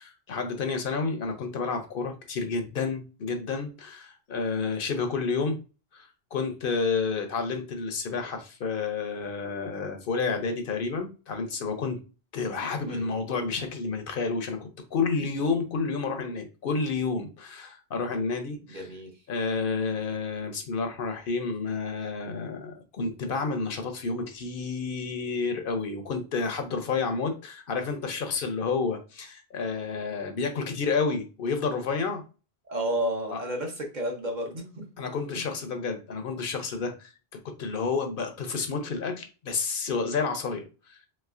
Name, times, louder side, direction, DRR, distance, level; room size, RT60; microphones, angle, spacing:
voice 1, 0.0-5.6 5.9-12.0 12.3-18.8 19.3-32.2 33.3-33.4 35.0-37.1 37.4-41.0, left 4 dB, 65° left, 6 dB, 0.7 m, -30 dB
voice 2, 12.9-13.2 18.7-19.2 32.6-34.9 37.9-38.2, right 1 dB, 50° right, 1 dB, 0.9 m, -32 dB
3.1 x 3.0 x 2.4 m, 0.33 s
omnidirectional pair, 1.1 m